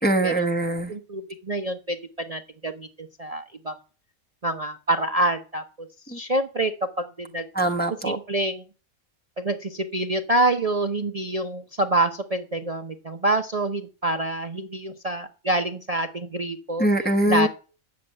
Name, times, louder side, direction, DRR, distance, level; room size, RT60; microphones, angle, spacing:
voice 1, 0.0-0.9 6.1-6.2 7.5-8.2 16.8-17.5, right 1 dB, 10° left, 1.0 m, -22 dB
voice 2, 0.9-3.8 4.4-6.7 7.0-7.5 8.0-8.6 9.4-16.9 17.3-17.5, right 2 dB, 30° right, 0.8 m, -26 dB
10.0 x 7.2 x 7.6 m
omnidirectional pair, 1.5 m